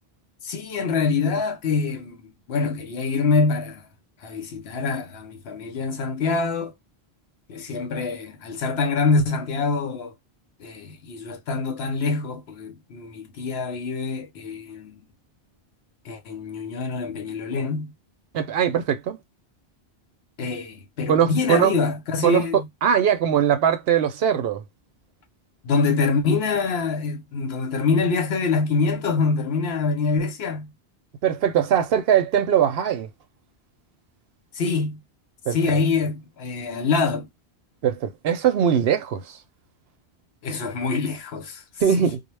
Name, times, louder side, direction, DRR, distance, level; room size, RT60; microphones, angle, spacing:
voice 1, 0.4-3.9 4.2-6.7 7.5-10.1 10.6-15.0 16.0-17.9 20.4-22.7 25.6-30.7 34.5-35.0 35.5-37.3 40.4-41.6 42.0-42.1, left 4 dB, 75° left, 1.0 m, -25 dB
voice 2, 18.3-19.2 21.1-21.7 22.2-24.6 31.2-33.1 35.5-35.8 37.8-39.4 41.8-42.2, right 9 dB, 70° right, 0.8 m, -21 dB
2.2 x 2.1 x 3.1 m
omnidirectional pair, 1.1 m